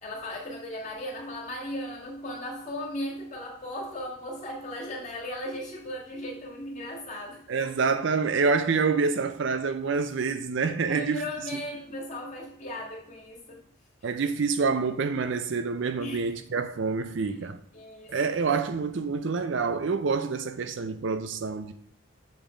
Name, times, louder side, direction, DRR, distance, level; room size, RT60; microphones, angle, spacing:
voice 1, 0.0-7.5 10.9-13.6 16.0-16.3 17.2-17.4 17.7-18.2, left 1 dB, 35° left, 1.7 m, -37 dB
voice 2, 7.5-11.2 14.0-17.6 18.1-21.7, right 4 dB, 60° right, 0.4 m, -27 dB
7.3 x 3.5 x 4.9 m
head